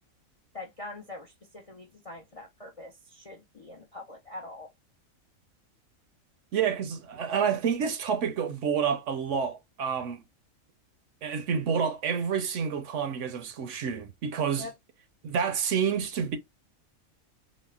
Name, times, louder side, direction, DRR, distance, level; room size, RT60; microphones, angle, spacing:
voice 1, 0.5-4.7 14.6-14.7, left 2 dB, 45° left, 0.4 m, -43 dB
voice 2, 6.5-10.2 11.2-14.7 15.2-16.4, right 7 dB, 70° right, 0.9 m, -29 dB
4.0 x 2.1 x 2.2 m
omnidirectional pair, 1.4 m